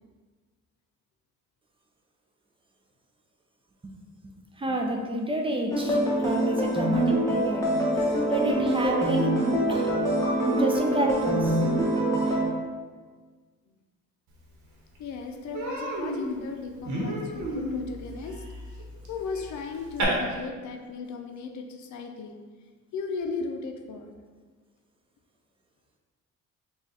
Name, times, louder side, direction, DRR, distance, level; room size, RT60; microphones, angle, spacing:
voice 1, 4.6-7.7 8.3-9.9 10.5-11.6 12.3-12.4, right 1 dB, 20° right, 1 dB, 0.5 m, -29 dB
sound 1, 5.7-12.5, right 1 dB, 10° left, 1.0 m, -25 dB
Human voice, 14.5-14.6 14.9-15.1 15.5-20.0, right 1 dB, 70° right, 1.0 m, -33 dB
voice 2, 15.0-18.4 18.7-18.8 19.1-22.4 22.9-24.1, left 4 dB, 70° left, 4 dB, 0.5 m, -36 dB
3.9 x 2.4 x 4.0 m, 1.4 s
cardioid pair, 90°, 30 cm